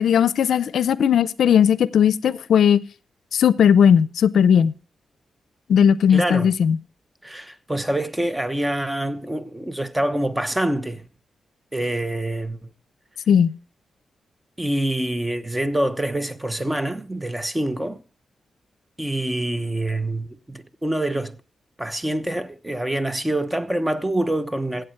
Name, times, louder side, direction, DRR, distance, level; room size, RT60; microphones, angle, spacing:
voice 1, 0.0-2.8 3.3-4.7 5.7-6.8 13.3-13.5, left 8 dB, 85° left, 0.5 m, -17 dB
voice 2, 6.1-6.5 7.2-11.1 11.7-12.7 14.6-18.0 19.0-21.4 21.8-24.8, right 1 dB, 15° right, 0.9 m, -26 dB
15.0 x 8.0 x 4.5 m
cardioid pair, 85°, 0 cm